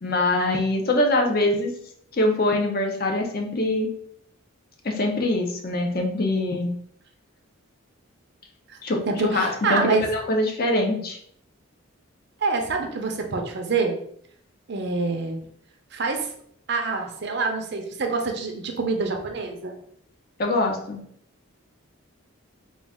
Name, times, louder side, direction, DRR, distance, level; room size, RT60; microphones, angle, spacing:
voice 1, 0.0-1.7 2.1-3.9 4.8-6.7 8.8-9.0 9.3-11.2 20.4-21.0, left 1 dB, 45° left, 1 dB, 0.6 m, -23 dB
voice 2, 9.1-10.1 12.4-14.0 14.7-15.4 15.9-16.3 16.7-19.8, right 4 dB, 50° right, 3 dB, 0.5 m, -26 dB
3.9 x 2.3 x 3.5 m, 0.65 s
head